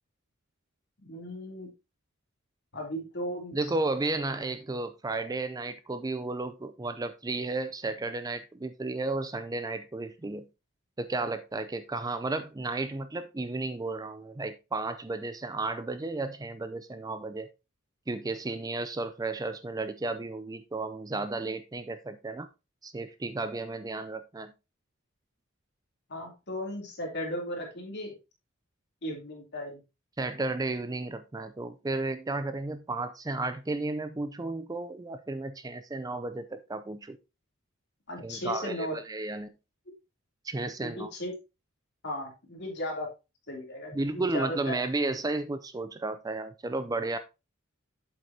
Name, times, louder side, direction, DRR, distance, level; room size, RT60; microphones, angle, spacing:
voice 1, 1.0-1.7 2.7-3.6 26.1-28.1 29.0-29.8 38.1-39.0 40.8-41.3 42.0-43.1 43.5-44.8, left 1 dB, 55° left, 0 dB, 3.0 m, -36 dB
voice 2, 3.5-10.5 11.0-17.5 18.1-22.5 22.8-24.5 30.2-37.2 38.2-39.5 40.4-41.1 43.9-47.2, right 2 dB, 20° right, 11 dB, 0.4 m, -33 dB
8.1 x 7.6 x 2.8 m, 0.26 s
head